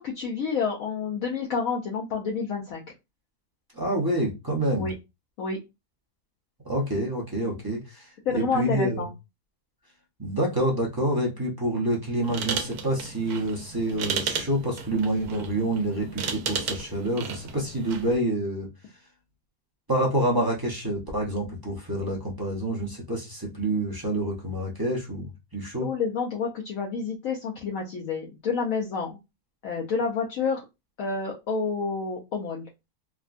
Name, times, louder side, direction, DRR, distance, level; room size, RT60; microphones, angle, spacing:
voice 1, 0.0-2.8 4.8-4.9 5.4-5.6 8.3-9.1 25.8-29.2 29.6-30.6 31.0-32.6, left 5 dB, 70° left, 1.0 m, -29 dB
voice 2, 3.7-4.9 6.6-9.1 10.2-18.7 19.9-25.9, right 1 dB, 20° right, 0.6 m, -27 dB
sound 1, 12.2-18.2, right 6 dB, 85° right, 1.1 m, -34 dB
3.5 x 2.2 x 2.5 m
omnidirectional pair, 1.6 m